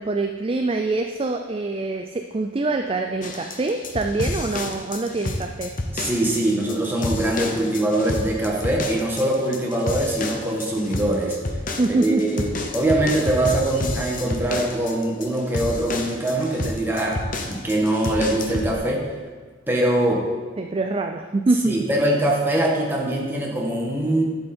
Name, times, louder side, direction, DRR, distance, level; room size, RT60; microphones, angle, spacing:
voice 1, 0.0-5.7 11.8-12.4 20.6-21.7, right 3 dB, 25° right, 5 dB, 0.4 m, -24 dB
sound 1, 3.2-18.7, left 2 dB, 40° left, 0.9 m, -30 dB
voice 2, 5.9-11.4 11.9-19.1 19.7-20.2 21.6-24.2, right 1 dB, 10° right, -2 dB, 1.6 m, -23 dB
11.0 x 7.8 x 4.4 m, 1.5 s
head